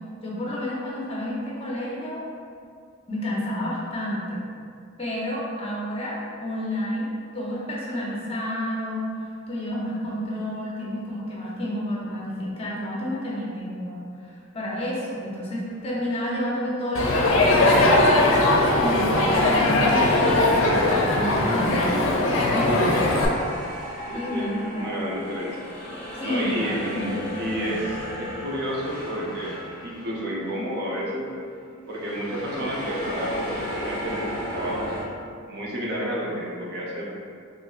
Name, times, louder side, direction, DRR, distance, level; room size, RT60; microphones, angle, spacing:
voice 1, 0.2-2.2 3.1-4.4 5.0-18.1 18.8-23.0 24.1-25.1 26.2-27.8, equal, 30° left, -5 dB, 0.7 m, -30 dB
sound 1, 15.7-15.9 18.3-30.7 31.0-31.2 31.9-35.0, equal, 5° left, 1.0 m, -35 dB
Crowd, 16.9-23.3, left 2 dB, 70° left, 0.5 m, -20 dB
voice 2, 24.1-25.6 26.2-27.8 28.2-31.3 31.9-34.9 35.5-37.0, equal, 55° right, -4 dB, 0.6 m, -31 dB
4.3 x 2.7 x 2.4 m, 2.3 s
head